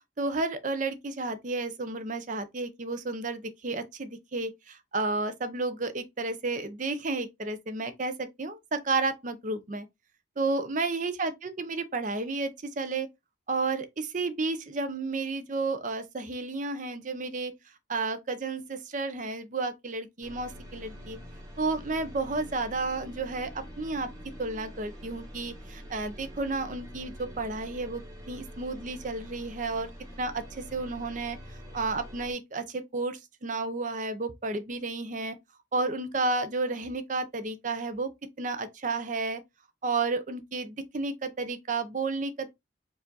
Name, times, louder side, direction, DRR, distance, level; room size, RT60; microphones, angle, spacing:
voice 1, 0.2-9.9 10.4-13.1 13.5-17.5 17.9-21.2 21.6-24.1 24.4-28.0 28.3-29.9 30.2-31.4 31.7-35.4 35.7-38.1 38.4-39.4 39.8-42.5, right 3 dB, 45° right, 0.6 m, -32 dB
sound 1, 20.2-32.3, equal, 20° right, 1.4 m, -45 dB
4.8 x 2.6 x 3.9 m
head